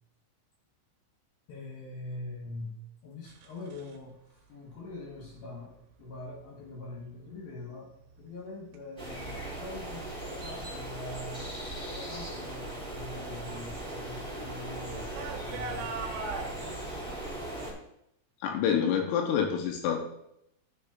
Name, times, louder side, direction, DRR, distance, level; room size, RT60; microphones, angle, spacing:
voice 1, 1.5-15.9, left 2 dB, 65° left, -3 dB, 2.4 m, -43 dB
sound 1, 3.3-4.0 5.1-5.4 6.0-6.4 7.0-7.5 7.9-12.2 12.4-16.5, right 4 dB, 75° right, 3.8 m, -44 dB
sound 2, 9.0-17.7, right 1 dB, ahead, 2.4 m, -39 dB
voice 2, 18.4-20.0, left 8 dB, 85° left, 2 dB, 3.5 m, -27 dB
13.0 x 7.1 x 2.4 m, 0.76 s
omnidirectional pair, 6.0 m